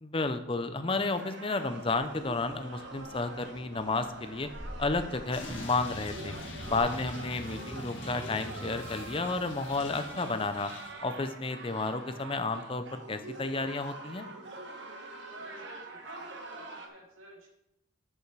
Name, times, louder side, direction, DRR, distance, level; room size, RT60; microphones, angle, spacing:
voice 1, 0.0-4.5 4.8-6.3 6.7-10.7 11.0-14.3, left 3 dB, 25° left, 9 dB, 0.6 m, -32 dB
sound 1, 0.9-16.9, right 2 dB, 60° right, 1.3 m, -45 dB
sound 2, 1.8-6.8, equal, 30° right, 2.4 m, -48 dB
sound 3, 5.3-10.9, left 1 dB, 65° left, 1.8 m, -43 dB
voice 2, 15.3-17.5, right 1 dB, 85° right, -2 dB, 2.7 m, -50 dB
10.5 x 5.6 x 4.7 m, 0.86 s
head